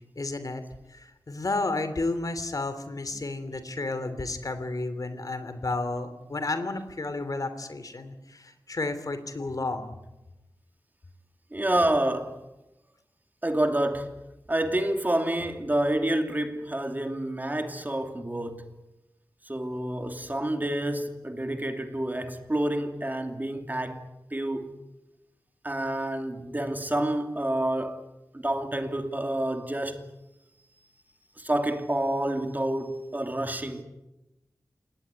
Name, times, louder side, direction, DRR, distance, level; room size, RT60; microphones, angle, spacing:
voice 1, 0.2-0.6 0.9-10.0, left 2 dB, 55° left, 3.0 m, -32 dB
voice 2, 11.5-12.4 13.4-14.2 14.5-18.7 19.4-24.8 25.6-28.0 28.3-30.1 31.4-33.8, right 1 dB, 25° right, 2.7 m, -28 dB
28.0 x 19.0 x 9.7 m
wide cardioid pair, 80°, 7 cm